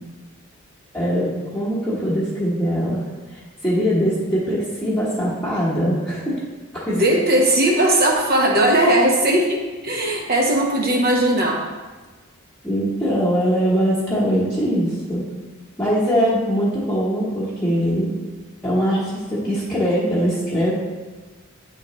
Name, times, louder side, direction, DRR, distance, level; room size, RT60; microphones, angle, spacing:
voice 1, 0.9-3.0 3.3-6.4 6.7-7.0 12.6-15.2 15.8-18.1 18.6-20.7, equal, 5° left, -10 dB, 1.2 m, -22 dB
voice 2, 6.9-11.6, right 1 dB, 45° right, 1 dB, 1.0 m, -18 dB
9.6 x 3.8 x 3.1 m, 1.3 s
head